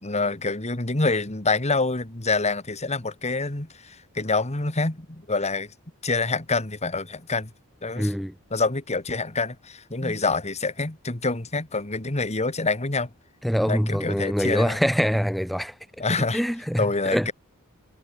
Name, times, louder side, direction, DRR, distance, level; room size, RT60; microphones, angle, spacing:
voice 1, 0.0-5.7 6.0-7.5 7.8-8.2 8.5-13.1 13.7-14.8 16.0-16.4 16.8-17.3, left 3 dB, 30° left, 2.0 m, -26 dB
voice 2, 8.0-8.3 10.0-10.1 13.4-15.7 16.3-16.8 17.1-17.3, equal, ahead, 1.1 m, -24 dB
head